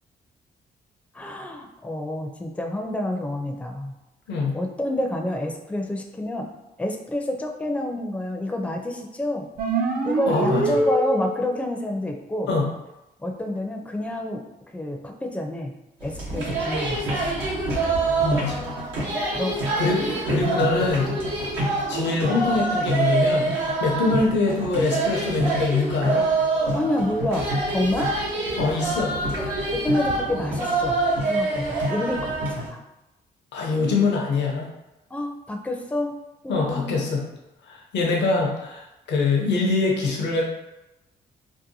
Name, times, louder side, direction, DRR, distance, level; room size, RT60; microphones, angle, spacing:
voice 1, 1.1-3.9 4.4-6.5 6.8-9.5 10.0-12.5 13.2-14.4 14.7-15.7 16.0-17.2 19.3-19.6 20.1-20.2 26.7-28.1 29.4-29.5 29.7-31.0 31.3-32.8 35.1-36.1 36.4-37.0, left 1 dB, 5° left, 3 dB, 0.4 m, -28 dB
sound 1, 9.6-11.6, right 2 dB, 55° right, 0.4 m, -24 dB
voice 2, 10.3-10.8 12.5-12.6 17.8-17.9 18.2-18.6 19.8-21.1 21.9-23.5 23.8-26.3 28.6-29.1 33.5-34.7 36.5-37.3 37.7-40.4, left 3 dB, 75° left, -1 dB, 0.6 m, -23 dB
sound 2, 16.0-32.7, right 2 dB, 90° right, 0.9 m, -25 dB
2.7 x 2.2 x 2.6 m, 0.95 s
cardioid pair, 65°, 18 cm